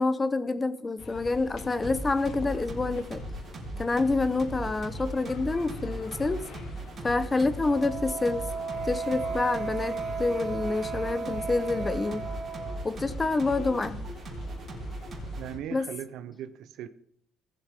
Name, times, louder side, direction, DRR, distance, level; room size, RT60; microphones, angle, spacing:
voice 1, 0.0-3.2 3.8-6.5 7.0-8.5 8.8-12.2 12.8-14.0 15.7-15.9, left 3 dB, 15° left, 0.8 m, -27 dB
sound 1, 1.0-15.6, left 3 dB, 55° left, 1.8 m, -44 dB
sound 2, 1.8-15.5, right 2 dB, 35° right, 2.8 m, -39 dB
Wind instrument woodwind instrument, 7.6-12.8, right 5 dB, 5° right, 3.4 m, -35 dB
voice 2, 15.4-16.9, right 10 dB, 70° right, 0.7 m, -38 dB
18.5 x 7.7 x 3.6 m
cardioid pair, 145°, 0 cm